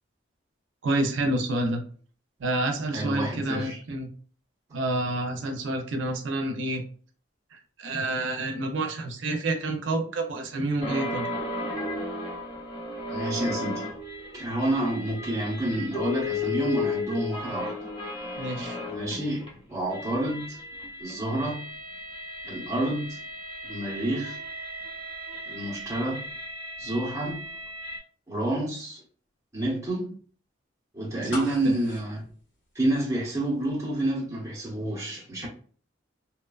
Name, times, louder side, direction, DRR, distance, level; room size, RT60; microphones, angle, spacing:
voice 1, 0.8-1.8 2.4-4.1 4.7-6.8 7.5-11.3 18.4-18.8 31.3-31.7, right 2 dB, 85° right, 0.5 m, -28 dB
voice 2, 2.9-3.8 13.1-14.0 14.3-17.7 18.9-20.6 21.0-21.6 22.4-23.2 23.6-24.4 25.5-26.2 26.8-27.4 28.3-29.0 29.5-30.1 30.9-32.2 32.7-35.5, right 1 dB, 15° right, 0.8 m, -29 dB
sound 1, 10.8-19.5 19.8-28.0, left 2 dB, 25° left, 0.6 m, -35 dB
sound 2, 31.3-33.3 33.6-33.7, left 3 dB, 80° left, 1.2 m, -40 dB
2.8 x 2.1 x 2.3 m
head